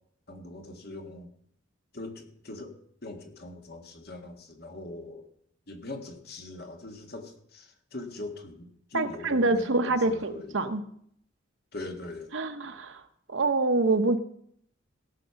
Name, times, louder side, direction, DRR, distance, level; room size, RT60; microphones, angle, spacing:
voice 1, 0.3-1.3 1.9-2.8 3.0-5.3 5.7-10.6 11.7-12.3, left 2 dB, 50° left, 4 dB, 1.8 m, -41 dB
voice 2, 8.9-10.8 12.3-13.0 13.3-14.2, right 2 dB, 70° right, 9 dB, 0.9 m, -26 dB
17.0 x 6.6 x 5.8 m, 0.68 s
head